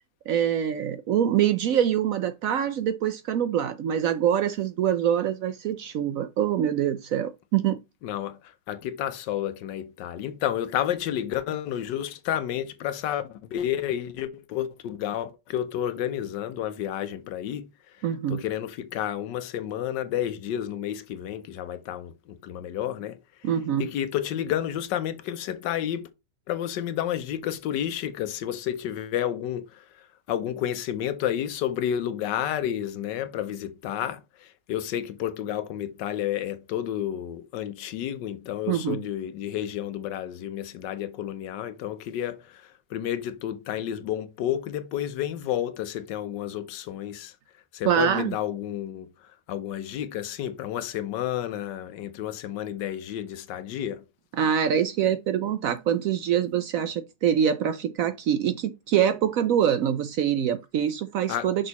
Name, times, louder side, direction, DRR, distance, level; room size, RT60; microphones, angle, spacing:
voice 1, 0.3-7.8 18.0-18.4 23.4-23.9 38.7-39.0 47.9-48.3 54.4-61.7, right 9 dB, 70° right, 0.8 m, -25 dB
voice 2, 8.0-17.7 18.0-23.2 23.8-26.1 26.5-47.3 47.7-54.0 61.3-61.5, left 11 dB, 85° left, 1.3 m, -31 dB
6.2 x 3.9 x 4.0 m
omnidirectional pair, 1.9 m